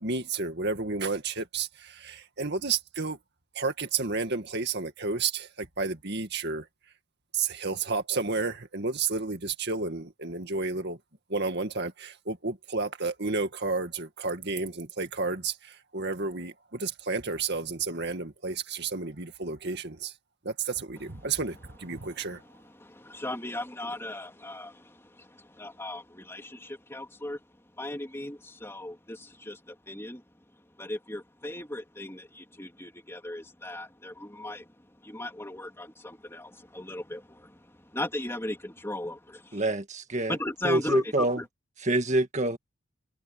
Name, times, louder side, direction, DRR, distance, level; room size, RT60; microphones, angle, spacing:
voice 1, 0.0-3.2 3.6-6.6 7.3-11.0 11.3-20.1 20.4-22.4, right 4 dB, 50° right, 2.2 m, -31 dB
voice 2, 21.9-27.4 27.8-30.2 30.8-39.6 40.3-41.4, left 1 dB, 10° left, 3.0 m, -37 dB
voice 3, 39.5-40.4 40.6-41.4 41.8-42.6, right 1 dB, 35° right, 1.9 m, -26 dB
head